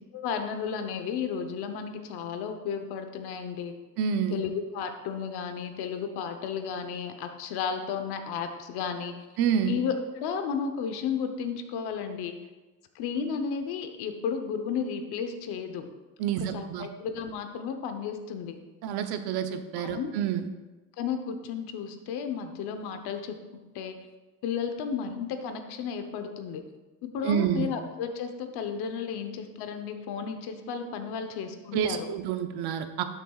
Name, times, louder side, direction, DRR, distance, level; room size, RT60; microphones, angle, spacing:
voice 1, 0.1-3.7 4.3-9.3 9.7-12.4 12.9-15.9 16.4-18.6 19.8-20.1 21.0-23.4 23.7-24.0 24.4-26.6 27.0-32.1, left 6 dB, 85° left, 6 dB, 1.0 m, -33 dB
voice 2, 4.0-4.4 9.4-9.8 16.2-16.9 18.8-20.5 27.2-27.7 31.7-33.0, right 8 dB, 80° right, 8 dB, 0.8 m, -28 dB
12.0 x 6.8 x 2.4 m, 1.1 s
cardioid pair, 125°, 38 cm